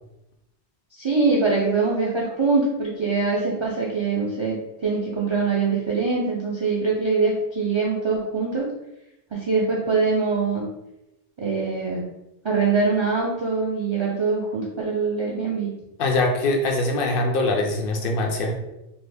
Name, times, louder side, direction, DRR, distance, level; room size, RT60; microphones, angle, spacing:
voice 1, 0.9-8.7 9.3-10.7 11.4-12.0 12.4-15.7, right 4 dB, 40° right, -4 dB, 0.4 m, -23 dB
voice 2, 16.0-18.5, left 2 dB, 65° left, 2 dB, 0.7 m, -22 dB
2.7 x 2.5 x 3.3 m, 0.90 s
omnidirectional pair, 1.1 m